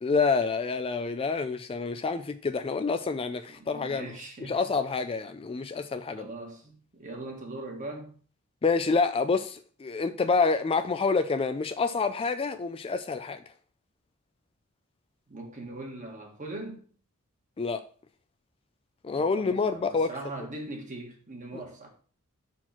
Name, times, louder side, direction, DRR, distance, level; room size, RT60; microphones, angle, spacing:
voice 1, 0.0-4.1 4.4-6.3 8.6-13.4 17.6-17.8 19.0-20.1, left 4 dB, 25° left, 0.4 m, -27 dB
voice 2, 3.5-4.6 6.2-8.1 15.3-16.8 19.2-21.9, right 2 dB, 35° right, 1.8 m, -40 dB
6.1 x 4.5 x 5.7 m
head